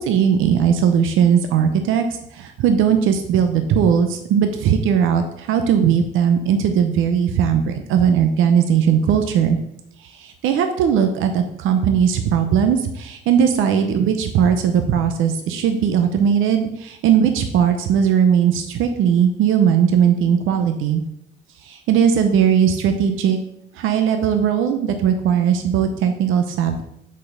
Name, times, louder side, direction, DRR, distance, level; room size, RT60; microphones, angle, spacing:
voice 1, 0.0-2.1 2.3-9.6 10.0-21.0 21.6-23.4 23.7-26.8, right 8 dB, 90° right, 7 dB, 0.8 m, -18 dB
5.5 x 4.4 x 6.3 m, 0.76 s
cardioid pair, 90°, 20 cm